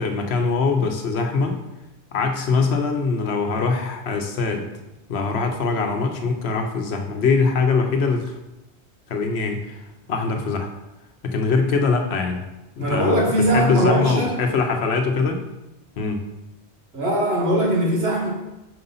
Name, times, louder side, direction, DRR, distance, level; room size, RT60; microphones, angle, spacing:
voice 1, 0.0-1.6 2.1-4.7 5.1-8.3 9.1-9.8 10.1-10.7 11.2-12.4 12.8-13.2 13.5-15.4 16.0-16.2, left 4 dB, 75° left, 4 dB, 1.0 m, -22 dB
voice 2, 12.8-14.4 16.9-18.3, right 1 dB, 75° right, -3 dB, 1.7 m, -21 dB
4.9 x 3.9 x 5.5 m, 0.97 s
omnidirectional pair, 1.1 m